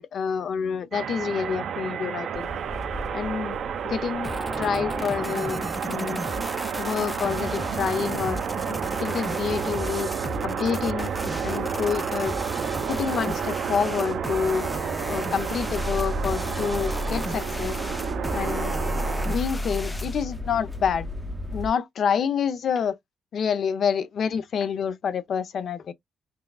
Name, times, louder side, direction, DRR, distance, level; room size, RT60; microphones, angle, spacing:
voice 1, 0.0-2.5 3.1-3.6 3.8-6.2 6.8-8.4 8.7-10.1 10.4-11.1 11.4-12.3 12.9-14.7 15.1-17.8 18.3-18.8 19.3-21.1 21.5-23.0 23.3-25.9, left 7 dB, 60° left, 0.7 m, -28 dB
sound 1, 0.9-19.4, right 8 dB, 65° right, 0.7 m, -31 dB
sound 2, 2.3-21.7, left 1 dB, 10° right, 0.7 m, -36 dB
sound 3, 4.2-20.2, left 1 dB, 15° left, 0.4 m, -35 dB
5.6 x 2.4 x 2.3 m
cardioid pair, 90°, 0 cm